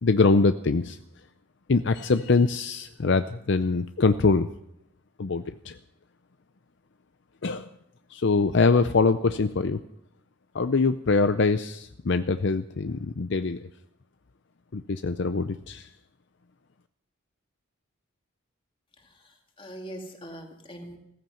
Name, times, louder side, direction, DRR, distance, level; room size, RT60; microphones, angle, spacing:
voice 1, 0.0-1.0 1.7-4.5 5.2-5.8 7.4-7.7 8.1-9.8 10.5-13.6 14.7-15.9, left 4 dB, 55° left, 10 dB, 0.6 m, -23 dB
voice 2, 18.9-21.0, equal, 25° left, 3 dB, 2.4 m, -42 dB
16.0 x 14.5 x 5.8 m, 0.77 s
head